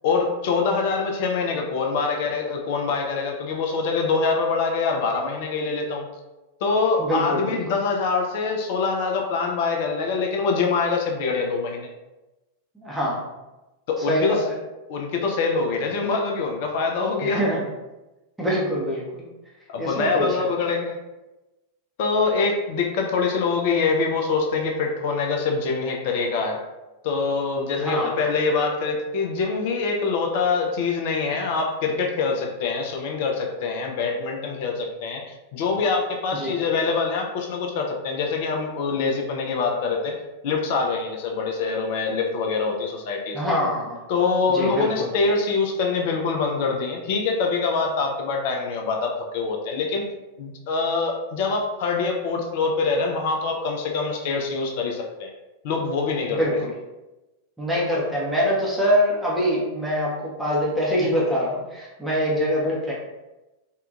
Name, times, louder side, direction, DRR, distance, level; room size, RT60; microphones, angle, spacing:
voice 1, 0.0-6.1 6.6-11.9 13.9-14.4 14.9-17.4 19.7-21.0 22.0-26.6 27.0-43.4 44.1-50.1 50.4-55.3 55.6-56.4, left 4 dB, 50° left, 2 dB, 0.4 m, -24 dB
voice 2, 7.0-7.6 12.8-13.3 14.1-14.4 17.2-17.6 18.4-19.3 19.8-20.4 27.8-28.1 36.4-36.5 43.3-44.0 44.5-45.1 56.4-56.7 57.6-62.9, equal, 5° right, -6 dB, 0.6 m, -24 dB
2.7 x 2.2 x 2.3 m, 1.1 s
figure-of-eight pair, 90°, 0 cm